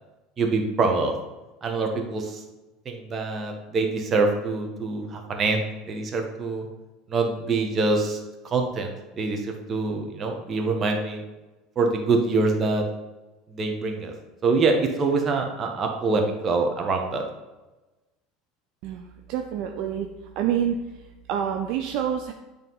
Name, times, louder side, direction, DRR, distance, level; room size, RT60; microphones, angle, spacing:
voice 1, 0.4-1.1 1.6-2.4 2.8-6.7 7.1-8.2 8.4-11.2 11.8-12.8 13.5-14.1 14.4-17.2, right 3 dB, 35° right, 3 dB, 1.2 m, -25 dB
voice 2, 18.8-20.1 20.4-20.8 21.3-22.3, right 9 dB, 60° right, 4 dB, 0.5 m, -27 dB
9.1 x 3.5 x 3.9 m, 1.1 s
figure-of-eight pair, 70°, 0 cm